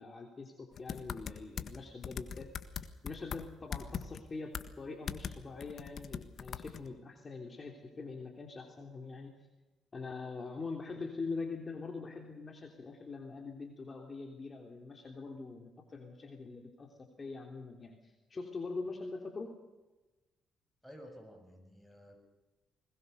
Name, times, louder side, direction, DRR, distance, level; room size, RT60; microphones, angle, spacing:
voice 1, 0.0-9.3 9.9-19.5, left 4 dB, 35° left, 3 dB, 3.1 m, -43 dB
sound 1, 0.8-1.8 2.0-3.4 3.7-4.2 4.5-4.7 5.1-5.3 5.6-6.9, left 7 dB, 55° left, 1.5 m, -40 dB
voice 2, 20.8-22.2, equal, ahead, 4 dB, 6.7 m, -53 dB
21.0 x 20.5 x 6.8 m, 1.1 s
cardioid pair, 90°, 0 cm